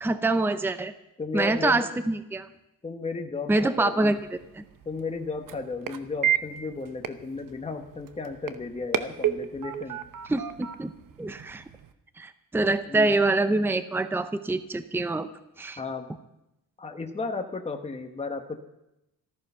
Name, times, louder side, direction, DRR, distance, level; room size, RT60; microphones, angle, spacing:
voice 1, 0.0-0.9 1.3-2.5 3.5-4.6 10.3-10.9 11.2-11.6 12.2-15.3 15.6-15.8, right 2 dB, 5° right, 11 dB, 0.6 m, -25 dB
voice 2, 1.2-1.9 2.8-4.2 4.8-10.0 11.4-11.6 12.9-13.2 15.8-16.1 16.8-18.6, left 4 dB, 15° left, 4 dB, 1.2 m, -34 dB
sound 1, 4.0-11.9, right 10 dB, 65° right, 1.0 m, -33 dB
14.0 x 14.0 x 5.6 m, 0.88 s
cardioid pair, 130°, 36 cm